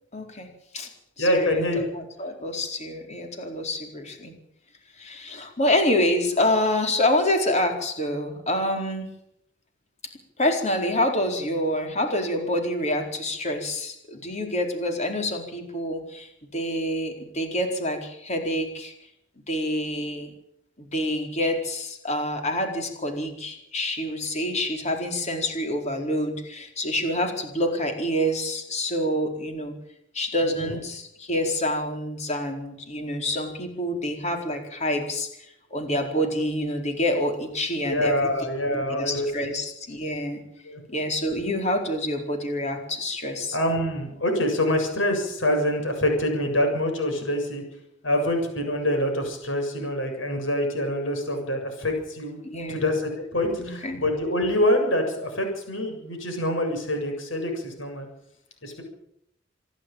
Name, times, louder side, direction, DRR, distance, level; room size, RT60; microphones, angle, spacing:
voice 1, 0.1-0.5 0.7-0.9 1.2-4.3 5.0-9.1 10.4-18.9 19.5-20.3 20.8-29.7 30.1-40.4 40.9-43.6 52.4-52.9 53.6-54.0, left 1 dB, 35° left, 3 dB, 4.5 m, -27 dB
voice 2, 1.2-1.8 30.4-30.8 37.8-39.5 40.6-40.8 43.5-47.6 48.0-52.4 52.7-58.1 58.6-58.8, left 1 dB, 80° left, 4 dB, 7.3 m, -25 dB
27.0 x 11.5 x 9.1 m, 0.77 s
head